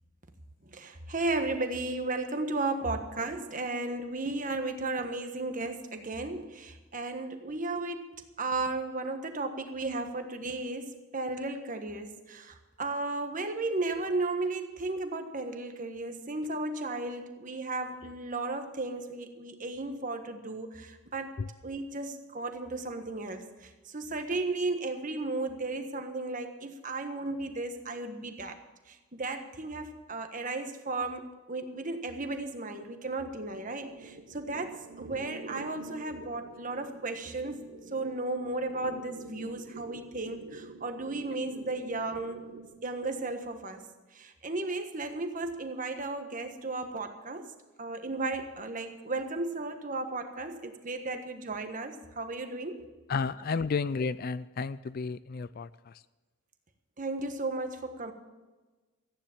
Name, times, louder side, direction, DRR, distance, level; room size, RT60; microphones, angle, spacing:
voice 1, 0.6-21.4 21.6-28.6 28.9-37.6 37.9-42.4 42.8-43.9 44.1-47.5 47.8-52.9 57.0-58.1, right 2 dB, 35° right, 6 dB, 1.4 m, -34 dB
sound 1, 33.5-43.4, right 3 dB, 70° right, 1.3 m, -48 dB
voice 2, 53.1-56.0, left 5 dB, 45° left, 16 dB, 0.3 m, -32 dB
15.0 x 9.8 x 7.3 m, 1.2 s
head